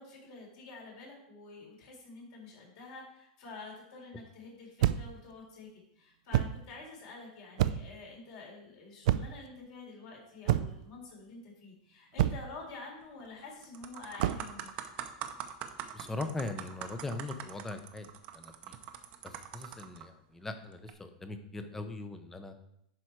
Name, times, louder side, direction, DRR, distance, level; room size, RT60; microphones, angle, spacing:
voice 1, 0.0-5.7 6.0-14.7, left 3 dB, 50° left, -2 dB, 3.8 m, -48 dB
sound 1, 4.8-5.2 6.3-6.6 7.6-8.0 9.1-9.5 10.5-10.9 12.2-12.6 14.2-14.5, right 12 dB, 65° right, 0.4 m, -28 dB
sound 2, 13.0-13.3 13.6-20.0 20.7-20.9, right 10 dB, 35° right, 0.7 m, -43 dB
voice 2, 15.9-18.1 18.3-18.8 19.2-22.5, left 2 dB, 10° left, 8 dB, 0.7 m, -40 dB
11.0 x 4.8 x 4.6 m, 0.76 s
supercardioid pair, 160°, 4 cm